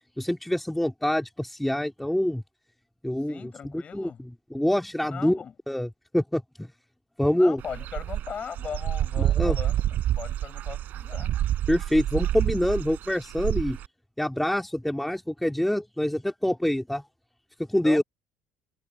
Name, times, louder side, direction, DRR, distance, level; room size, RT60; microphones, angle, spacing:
voice 1, 0.2-2.4 3.0-5.4 5.7-6.7 7.2-7.6 9.2-9.6 11.7-13.8 14.2-17.0 17.7-18.0, left 1 dB, 5° left, 2.2 m, -26 dB
voice 2, 3.3-4.2 5.0-5.5 7.3-11.4 17.8-18.0, left 7 dB, 40° left, 7.0 m, -39 dB
Dog / Bird, 7.6-13.9, right 12 dB, 60° right, 4.4 m, -28 dB
supercardioid pair, 90°, 3 cm